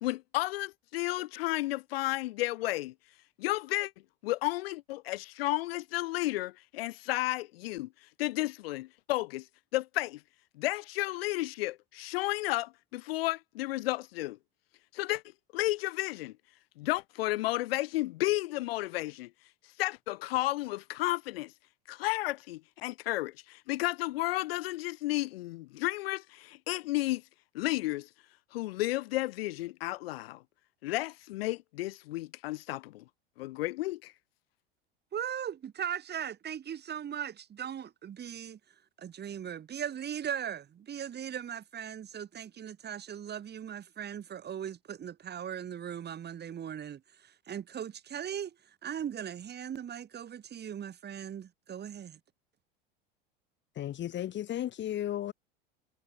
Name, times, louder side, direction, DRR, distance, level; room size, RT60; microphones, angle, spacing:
voice 1, 0.0-2.9 3.4-3.9 4.2-7.9 8.2-9.5 9.7-10.2 10.6-14.4 14.9-15.2 15.5-16.3 16.8-19.3 19.8-21.5 21.9-27.2 27.5-28.1 28.5-30.4 30.8-33.0 33.4-34.1, left 18 dB, 75° left, 0.5 m, -32 dB
voice 2, 35.1-38.6 39.0-52.2, right 9 dB, 35° right, 4.7 m, -39 dB
voice 3, 53.8-55.3, left 12 dB, 40° left, 1.7 m, -34 dB
hypercardioid pair, 85°, 30 cm